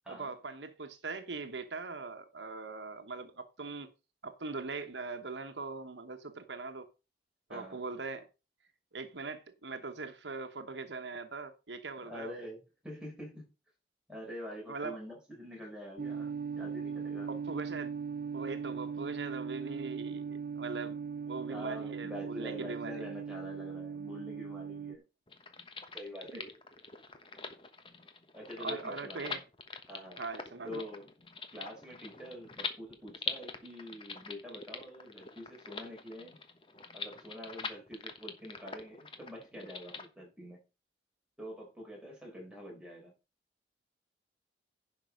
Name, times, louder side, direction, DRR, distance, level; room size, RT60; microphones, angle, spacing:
voice 1, 0.1-3.9 4.2-6.9 7.5-8.3 8.9-12.3 14.7-15.0 17.3-17.9 18.3-23.0 26.3-26.4 28.6-29.4 30.2-30.8, right 4 dB, 80° right, 1.1 m, -41 dB
voice 2, 7.5-7.8 12.0-13.5 14.1-17.3 21.5-25.0 25.9-26.6 28.3-29.4 29.9-30.2 30.6-31.1 31.5-36.4 36.9-40.6 41.4-43.1, equal, 5° right, 4.5 m, -46 dB
sound 1, 16.0-25.0, right 6 dB, 50° right, 0.4 m, -39 dB
sound 2, 25.3-40.1, left 5 dB, 30° left, 1.1 m, -44 dB
10.5 x 5.5 x 5.2 m
head